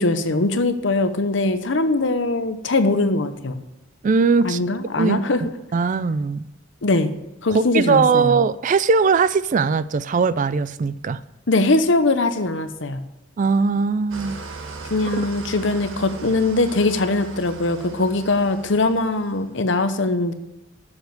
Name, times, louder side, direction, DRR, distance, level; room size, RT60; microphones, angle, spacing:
voice 1, 0.0-3.6 4.4-5.5 6.8-7.1 7.4-8.3 11.5-13.0 14.9-20.3, left 2 dB, 65° left, 10 dB, 0.8 m, -21 dB
voice 2, 4.0-4.6 5.0-6.4 7.5-11.2 13.4-14.4, right 5 dB, 40° right, 16 dB, 0.3 m, -20 dB
Engine starting / Idling, 14.1-19.5, right 3 dB, 85° right, 1.4 m, -38 dB
7.2 x 7.0 x 7.7 m, 0.95 s
head